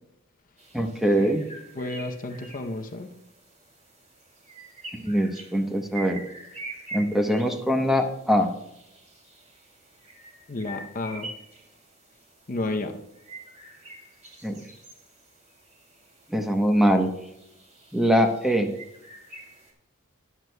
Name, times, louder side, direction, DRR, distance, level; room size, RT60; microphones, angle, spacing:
sound 1, 0.6-19.7, right 2 dB, 35° right, 2.7 m, -46 dB
voice 1, 0.7-1.4 4.9-6.2 6.9-8.5 14.4-14.6 16.3-17.3 17.9-18.7, equal, ahead, 4 dB, 0.9 m, -23 dB
voice 2, 1.8-3.1 10.5-11.3 12.5-12.9, left 2 dB, 40° left, 5 dB, 0.7 m, -31 dB
14.0 x 10.5 x 2.2 m, 0.84 s
head